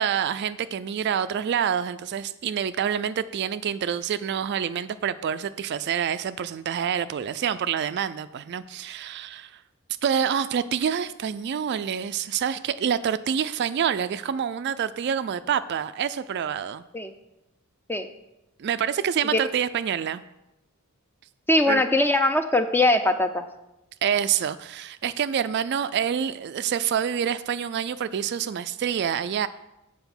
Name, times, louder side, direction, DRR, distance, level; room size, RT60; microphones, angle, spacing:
voice 1, 0.0-9.5 10.0-16.8 18.6-20.2 21.7-21.8 24.0-29.5, right 8 dB, 50° right, 13 dB, 0.3 m, -27 dB
voice 2, 21.5-23.5, left 1 dB, 10° left, 8 dB, 0.5 m, -21 dB
8.0 x 4.8 x 7.0 m, 0.92 s
head